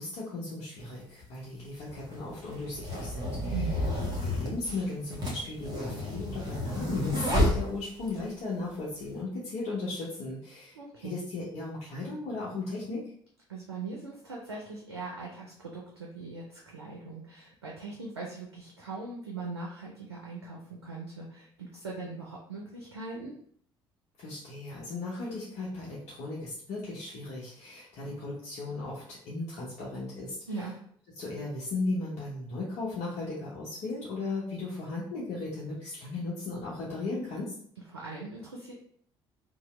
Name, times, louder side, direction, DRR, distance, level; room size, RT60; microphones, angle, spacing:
voice 1, 0.0-3.5 4.1-13.0 24.2-30.4 31.2-37.5, left 2 dB, 55° left, -6 dB, 0.8 m, -36 dB
sound 1, 0.8-0.9 1.8-8.2, left 1 dB, 30° right, 1.2 m, -31 dB
voice 2, 3.5-3.8 10.7-11.1 13.5-23.3 30.5-30.7 37.9-38.7, right 3 dB, 90° right, -3 dB, 0.4 m, -40 dB
2.8 x 2.0 x 3.1 m, 0.62 s
figure-of-eight pair, 55°, 13 cm